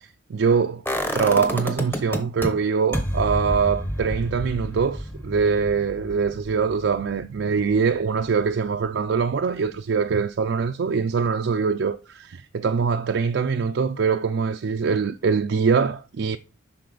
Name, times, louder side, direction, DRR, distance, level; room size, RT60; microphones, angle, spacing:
voice 1, 0.3-0.8 1.1-16.4, right 5 dB, 65° right, 0.4 m, -23 dB
sound 1, 0.9-2.5 2.9-8.8 9.1-9.2, equal, 10° left, 1.0 m, -30 dB
11.0 x 4.3 x 3.9 m
head